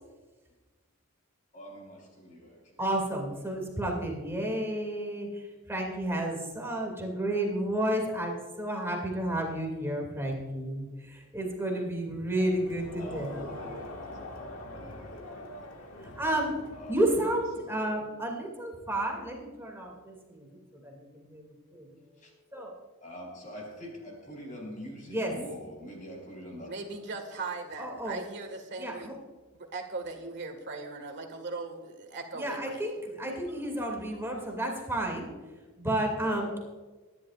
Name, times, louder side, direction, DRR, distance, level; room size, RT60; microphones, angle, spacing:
voice 1, 1.5-2.8 13.0-16.1 16.7-17.1 17.6-17.9 22.2-22.3 23.0-26.7 34.2-34.5 36.2-36.6, equal, 35° left, 0 dB, 4.4 m, -45 dB
voice 2, 2.8-13.4 16.1-16.5 16.9-20.5 20.7-22.0 22.5-22.7 25.1-25.3 27.8-28.2 28.8-29.1 32.3-35.3 35.8-36.6, right 1 dB, 10° right, 0 dB, 2.5 m, -31 dB
Crowd, 12.4-17.6, left 1 dB, 90° left, 1.8 m, -43 dB
voice 3, 26.7-29.2 29.6-32.8, right 3 dB, 55° right, 4 dB, 1.8 m, -39 dB
24.0 x 11.0 x 2.5 m, 1.3 s
head